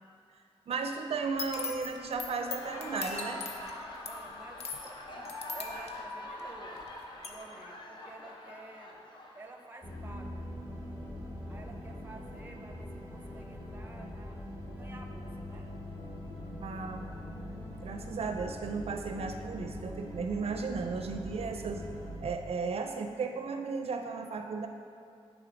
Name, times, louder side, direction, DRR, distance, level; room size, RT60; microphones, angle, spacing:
voice 1, 0.7-3.4 16.6-17.0 17.8-21.8 22.2-24.7, right 4 dB, 70° right, 6 dB, 0.4 m, -35 dB
sound 1, 1.2-6.9 7.2-7.3, left 4 dB, 80° left, 0.7 m, -41 dB
Laughter, 2.3-9.9, left 1 dB, 45° left, 0.8 m, -44 dB
voice 2, 4.1-9.0 9.3-10.5 11.5-14.4 14.8-15.8, right 2 dB, 20° right, 3 dB, 0.6 m, -51 dB
sound 2, 9.8-22.2, equal, 30° left, 1.9 m, -42 dB
10.0 x 3.5 x 5.0 m, 2.3 s
wide cardioid pair, 165°, 11 cm